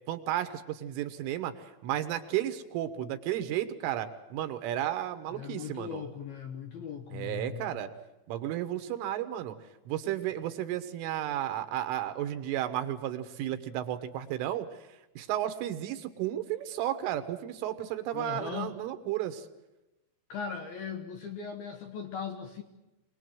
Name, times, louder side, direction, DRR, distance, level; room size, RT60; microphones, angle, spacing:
voice 1, 0.1-6.0 7.1-7.9 8.3-9.6 9.9-14.7 15.2-19.5, right 12 dB, 75° right, 9 dB, 3.6 m, -33 dB
voice 2, 5.3-7.7 18.1-18.8 20.3-22.6, left 7 dB, 65° left, 4 dB, 2.5 m, -39 dB
25.0 x 20.0 x 7.8 m, 0.99 s
omnidirectional pair, 5.9 m